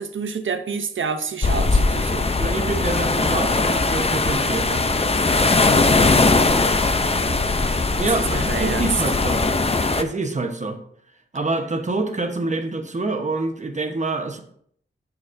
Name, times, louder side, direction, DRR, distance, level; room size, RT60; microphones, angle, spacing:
voice 1, 0.0-2.3 7.2-7.4 8.0-8.9, right 5 dB, 75° right, 0.8 m, -28 dB
sound 1, 1.4-10.0, left 3 dB, 30° left, 0.6 m, -20 dB
voice 2, 2.4-4.9 8.0-9.4 10.0-10.8 11.3-14.4, right 3 dB, 35° right, 1.1 m, -26 dB
9.8 x 7.5 x 2.7 m
wide cardioid pair, 85°, 21 cm